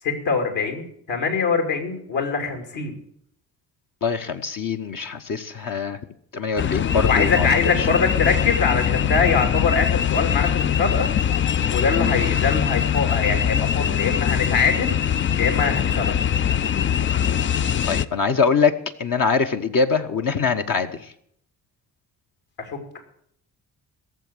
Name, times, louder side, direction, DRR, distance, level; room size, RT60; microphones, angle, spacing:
voice 1, 0.0-3.0 7.1-11.1 11.7-15.0 15.3-16.1 22.6-22.8, left 5 dB, 60° left, 5 dB, 3.0 m, -23 dB
voice 2, 4.0-6.0 6.3-7.5 17.9-18.7 19.0-20.9, left 5 dB, 40° left, 5 dB, 1.1 m, -23 dB
sound 1, 6.6-18.1, left 9 dB, 25° left, 0.4 m, -22 dB
16.5 x 7.3 x 7.9 m, 0.70 s
figure-of-eight pair, 40°, 50 cm